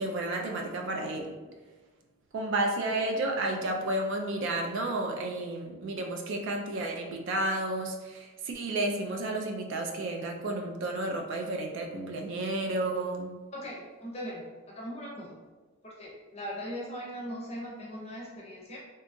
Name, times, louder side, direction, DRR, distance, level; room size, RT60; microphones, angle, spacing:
voice 1, 0.0-1.3 2.3-13.3, right 2 dB, 55° right, 2 dB, 0.3 m, -32 dB
voice 2, 13.5-15.4 15.8-18.8, equal, 30° left, -3 dB, 0.5 m, -40 dB
2.7 x 2.2 x 2.5 m, 1.3 s
head